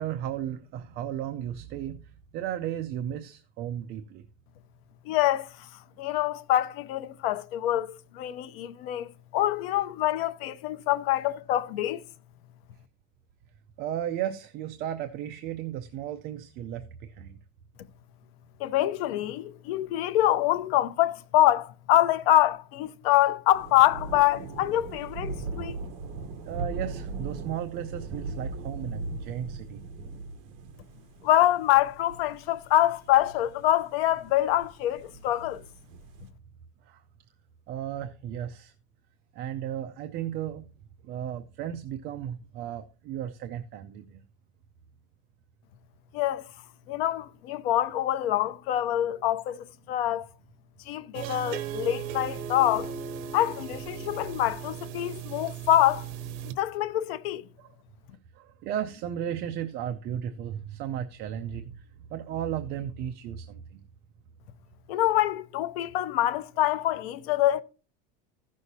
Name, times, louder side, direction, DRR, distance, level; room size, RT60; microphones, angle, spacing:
voice 1, 0.0-4.3 13.8-17.4 25.0-25.1 26.4-29.8 36.8-37.0 37.7-38.7 39.3-40.7 41.0-44.2 51.3-51.5 57.6-57.8 58.3-63.8, right 10 dB, 35° right, 0.5 m, -35 dB
voice 2, 5.1-5.5 6.0-12.0 18.6-25.8 31.2-35.6 46.1-46.4 46.9-50.3 50.9-52.9 53.3-56.1 56.5-57.4 64.9-67.6, left 13 dB, 85° left, 0.8 m, -25 dB
sound 1, 23.5-36.3, right 3 dB, 55° right, 1.2 m, -39 dB
sound 2, 51.1-56.5, right 8 dB, 80° right, 0.9 m, -37 dB
15.0 x 6.3 x 2.7 m
cardioid pair, 170°, 29 cm